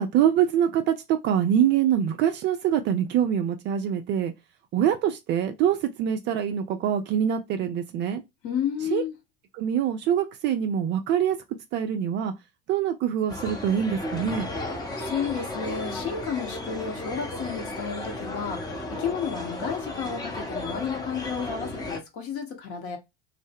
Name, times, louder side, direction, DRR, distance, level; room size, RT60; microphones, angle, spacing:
voice 1, 0.0-4.3 4.7-8.2 8.9-9.0 9.6-11.4 11.7-12.3 12.7-14.5, right 9 dB, 35° right, 0.4 m, -24 dB
voice 2, 8.4-9.1 15.0-23.0, left 7 dB, 40° left, 0.9 m, -32 dB
sound 1, 13.3-22.0, left 2 dB, 10° left, 0.6 m, -34 dB
2.0 x 2.0 x 3.4 m
figure-of-eight pair, 70°, 33 cm